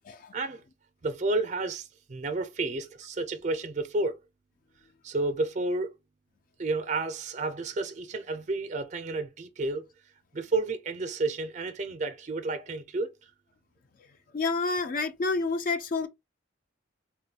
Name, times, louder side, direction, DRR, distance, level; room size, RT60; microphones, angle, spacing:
voice 1, 0.3-0.6 1.0-4.2 5.0-5.9 6.6-9.9 10.3-13.1, right 3 dB, 40° right, 0.4 m, -31 dB
voice 2, 14.3-16.1, left 3 dB, 45° left, 0.4 m, -29 dB
3.8 x 2.2 x 2.7 m
head